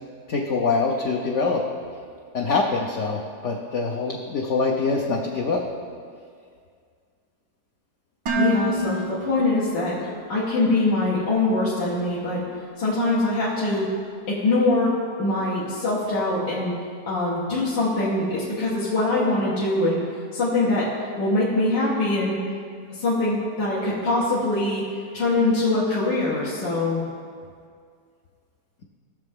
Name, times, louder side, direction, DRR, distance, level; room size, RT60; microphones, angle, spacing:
voice 1, 0.3-1.6 2.3-5.6, left 4 dB, 60° left, -1 dB, 0.8 m, -24 dB
Dishes pots and pans, 8.3-10.3, right 1 dB, 85° right, 2.0 m, -28 dB
voice 2, 8.4-12.4 12.8-13.9 14.3-14.9 15.2-16.7 17.1-20.0 20.3-20.9 21.2-22.4 22.9-24.8 25.1-27.0, left 2 dB, 80° left, -9 dB, 2.3 m, -23 dB
16.5 x 6.6 x 3.6 m, 2.1 s
omnidirectional pair, 2.0 m